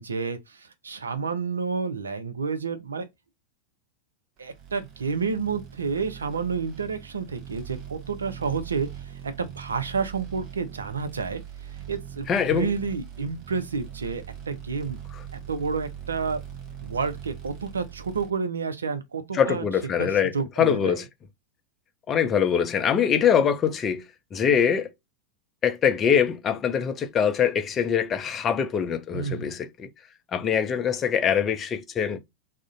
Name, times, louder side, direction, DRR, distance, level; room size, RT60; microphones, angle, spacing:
voice 1, 0.0-3.1 4.4-11.4 11.7-15.0 15.3-16.4 16.8-19.6 20.0-21.0 29.1-29.6, right 5 dB, 75° right, 0.5 m, -30 dB
sound 1, 4.5-18.3, right 9 dB, 35° right, 0.7 m, -41 dB
voice 2, 12.3-12.7 19.3-21.0 22.1-24.0 24.3-24.9 25.6-29.9 30.3-32.2, left 8 dB, 25° left, 0.4 m, -23 dB
2.4 x 2.1 x 3.7 m
figure-of-eight pair, 90°, 0 cm